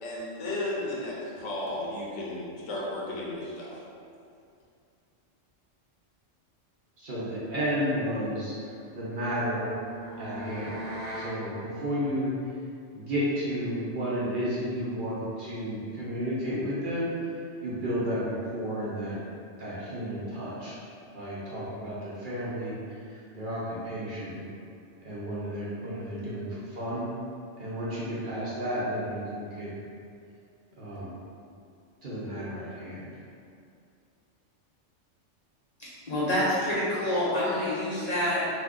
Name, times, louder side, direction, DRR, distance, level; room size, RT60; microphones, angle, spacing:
voice 1, 0.0-3.8, left 1 dB, 80° left, -5 dB, 1.0 m, -34 dB
voice 2, 7.0-8.5 8.9-9.7 10.2-10.8 11.1-12.3 12.9-17.1 17.6-19.2 19.6-20.8 21.1-22.8 23.1-24.4 25.0-27.1 27.6-29.7 30.8-31.2 32.0-33.1, equal, 55° right, -8 dB, 0.7 m, -32 dB
sound 1, 8.8-11.4, equal, 80° right, 1.0 m, -40 dB
voice 3, 35.8-38.5, left 1 dB, 50° left, -9 dB, 0.5 m, -27 dB
2.7 x 2.3 x 3.5 m, 2.4 s
omnidirectional pair, 1.2 m